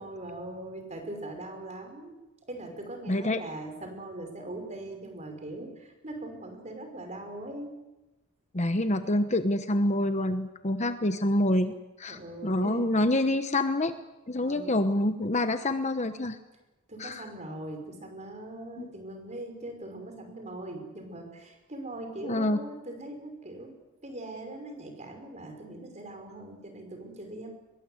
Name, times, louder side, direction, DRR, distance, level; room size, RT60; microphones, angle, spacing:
voice 1, 0.0-2.2 2.5-7.8 12.1-12.9 14.4-14.8 16.9-27.5, right 1 dB, 30° right, 5 dB, 5.5 m, -41 dB
voice 2, 3.1-3.4 8.5-13.9 14.3-16.4 17.0-17.2 18.8-18.9 22.2-22.6, left 1 dB, 30° left, 9 dB, 1.1 m, -27 dB
24.5 x 22.0 x 8.1 m, 1.0 s
head